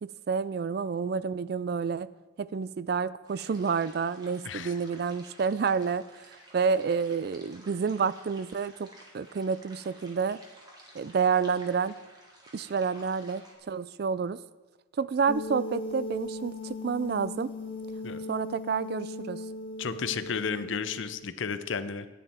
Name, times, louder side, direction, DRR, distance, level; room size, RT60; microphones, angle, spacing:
voice 1, 0.0-2.1 2.4-6.1 6.5-8.9 9.1-10.4 10.9-12.0 12.5-14.4 15.0-17.5 18.3-19.4, right 5 dB, 55° right, 17 dB, 0.3 m, -29 dB
sound 1, 3.3-13.6, right 1 dB, 20° right, 1.7 m, -53 dB
sound 2, 15.3-21.2, left 2 dB, 30° left, 1.3 m, -38 dB
voice 2, 19.8-22.1, left 6 dB, 75° left, 12 dB, 0.6 m, -33 dB
11.0 x 9.4 x 4.3 m, 1.2 s
head